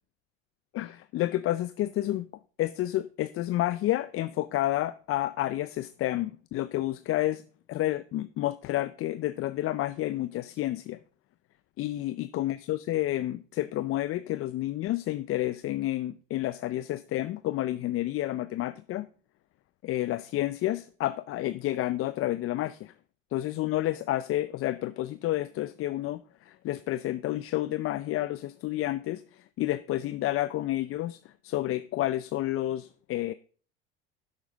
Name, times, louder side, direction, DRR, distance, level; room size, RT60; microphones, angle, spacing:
voice 1, 0.7-2.3 2.6-7.4 7.7-11.0 11.8-19.1 19.8-22.9 23.3-33.3, left 15 dB, 45° left, 0.5 m, -30 dB
10.5 x 8.1 x 3.5 m
hypercardioid pair, 75°, 32 cm